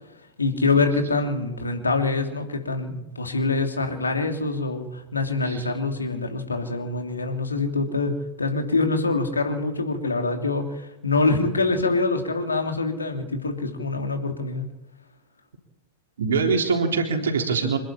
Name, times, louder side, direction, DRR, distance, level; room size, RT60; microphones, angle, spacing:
voice 1, 0.4-14.7, left 3 dB, 80° left, 4 dB, 3.1 m, -25 dB
voice 2, 16.2-17.8, right 5 dB, 65° right, 2 dB, 3.7 m, -23 dB
27.0 x 11.5 x 8.9 m, 1.0 s
figure-of-eight pair, 90°, 0 cm